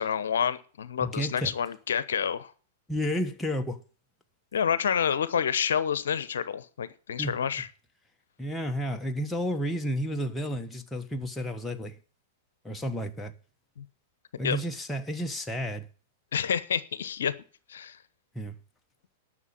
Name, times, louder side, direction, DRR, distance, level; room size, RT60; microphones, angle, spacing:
voice 1, 0.0-2.5 4.5-7.7 13.8-13.9 14.4-14.6 16.3-17.3 17.7-18.0, left 7 dB, 70° left, 0.9 m, -28 dB
voice 2, 1.0-1.5 2.9-3.8 7.2-7.4 8.4-12.0 12.6-13.3 14.4-15.9 18.3-18.5, equal, 10° left, 1.3 m, -31 dB
11.0 x 6.5 x 8.6 m
figure-of-eight pair, 100°, 0 cm